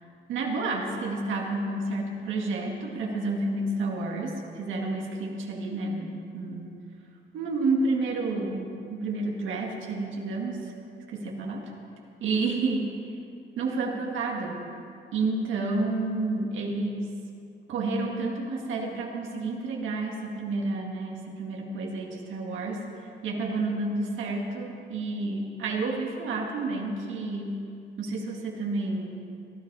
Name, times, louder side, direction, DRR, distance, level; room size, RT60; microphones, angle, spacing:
voice 1, 0.3-6.7 7.3-10.7 11.1-11.7 12.2-12.9 13.6-14.6 15.1-17.2 17.7-22.8 23.2-27.6 28.0-29.2, right 3 dB, 75° right, 0 dB, 2.1 m, -30 dB
18.0 x 11.5 x 4.8 m, 2.6 s
cardioid pair, 90°, 20 cm